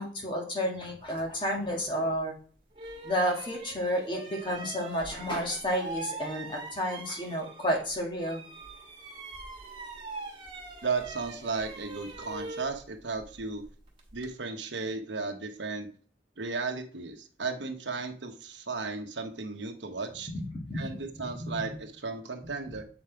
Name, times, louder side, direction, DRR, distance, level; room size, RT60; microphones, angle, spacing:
voice 1, 0.0-2.3 3.0-8.4 20.3-21.7 22.6-22.7, equal, 25° left, 0 dB, 1.8 m, -31 dB
sound 1, 2.1-2.2 2.7-7.9 8.2-14.3, right 3 dB, 30° right, 1.7 m, -43 dB
voice 2, 10.8-13.6 14.1-15.9 16.4-20.3 20.7-22.8, right 4 dB, 85° right, 5 dB, 1.1 m, -35 dB
8.0 x 5.0 x 4.6 m, 0.43 s
head